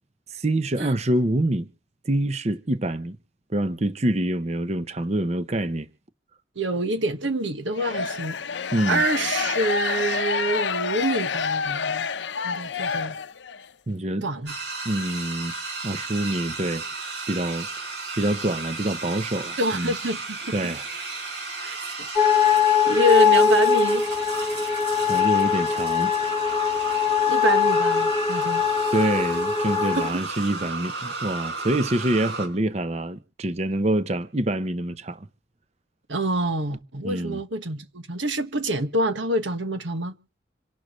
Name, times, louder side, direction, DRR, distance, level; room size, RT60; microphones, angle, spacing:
voice 1, 0.3-1.7 2.0-3.2 3.5-5.9 8.7-9.0 13.9-14.3 14.8-15.5 15.8-16.8 17.3-17.7 18.2-19.9 20.5-20.9 25.1-26.1 28.9-35.3 37.0-37.4, right 1 dB, 35° right, 0.7 m, -26 dB
voice 2, 6.5-8.4 8.8-12.1 12.4-13.1 14.2-14.6 19.6-20.7 21.6-21.9 22.9-24.0 27.3-28.6 29.9-30.2 36.1-40.1, right 1 dB, 90° right, 1.5 m, -26 dB
sound 1, 7.7-13.7, left 6 dB, 75° left, 0.7 m, -28 dB
sound 2, 14.5-32.5, right 3 dB, 65° right, 4.9 m, -34 dB
sound 3, 22.2-30.1, left 7 dB, 10° right, 1.9 m, -21 dB
27.0 x 12.0 x 3.1 m
head